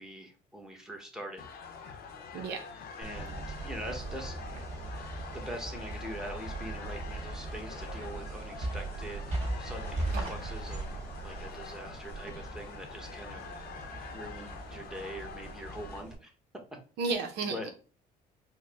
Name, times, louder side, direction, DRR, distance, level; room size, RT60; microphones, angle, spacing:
voice 1, 0.0-1.4 3.0-4.4 5.3-9.3 9.6-10.9 11.2-13.8 14.1-16.3 17.4-17.7, equal, 5° right, 3 dB, 1.1 m, -43 dB
sound 1, 1.4-16.0, left 6 dB, 65° left, 0.8 m, -46 dB
voice 2, 2.3-2.7 10.1-10.4 17.0-17.7, right 4 dB, 80° right, 4 dB, 0.8 m, -33 dB
sound 2, 3.0-16.1, right 2 dB, 40° right, 2.1 m, -39 dB
4.7 x 2.2 x 3.4 m, 0.37 s
cardioid pair, 110°, 17 cm